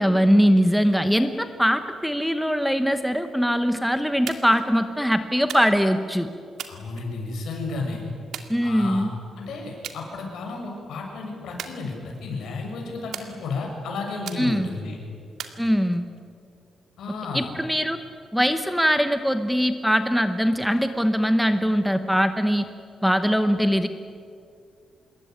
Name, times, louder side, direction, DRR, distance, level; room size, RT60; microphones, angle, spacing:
voice 1, 0.0-6.3 8.5-9.1 14.4-14.7 15.6-16.0 17.3-18.0 18.3-22.7 23.0-23.9, equal, ahead, 9 dB, 0.9 m, -21 dB
sound 1, 4.3-4.7 5.5-6.0 6.6-7.5 8.3-9.1 9.8-10.0 10.4-10.8 11.6-12.4 13.1-13.8 14.3-14.8 15.4-16.2, right 8 dB, 75° right, 2.1 m, -39 dB
voice 2, 6.7-8.0 8.6-9.1 9.4-15.0 17.0-17.5, left 3 dB, 70° left, 1 dB, 7.0 m, -32 dB
26.5 x 21.5 x 9.4 m, 2.4 s
wide cardioid pair, 165°, 0 cm